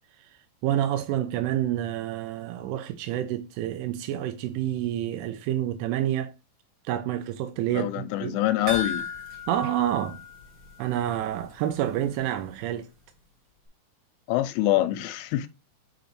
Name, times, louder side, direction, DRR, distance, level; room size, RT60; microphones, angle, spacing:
voice 1, 0.6-6.3 6.9-8.3 9.5-10.2 10.8-12.9, right 11 dB, 85° right, 3.2 m, -28 dB
voice 2, 7.7-9.1 14.3-15.5, left 14 dB, 90° left, 3.1 m, -25 dB
sound 1, 8.7-11.2 11.5-11.6 12.0-12.1, left 4 dB, 45° right, 1.5 m, -35 dB
7.4 x 5.1 x 3.1 m
omnidirectional pair, 5.5 m